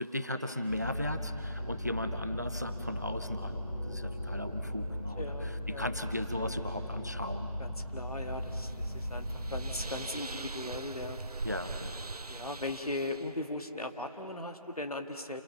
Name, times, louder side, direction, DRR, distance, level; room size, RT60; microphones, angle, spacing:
voice 1, 0.0-7.5 11.4-12.0, left 1 dB, 25° right, 9 dB, 0.6 m, -37 dB
sound 1, 0.7-9.8, equal, 10° left, 3.0 m, -38 dB
sound 2, 1.6-7.5, left 1 dB, 45° left, 3.1 m, -52 dB
voice 2, 5.2-5.9 7.6-11.2 12.3-15.4, left 2 dB, 70° left, 5 dB, 1.9 m, -38 dB
sound 3, 8.0-13.4, right 3 dB, 75° right, 0.7 m, -42 dB
28.5 x 27.5 x 5.8 m, 2.9 s
figure-of-eight pair, 175°, 20 cm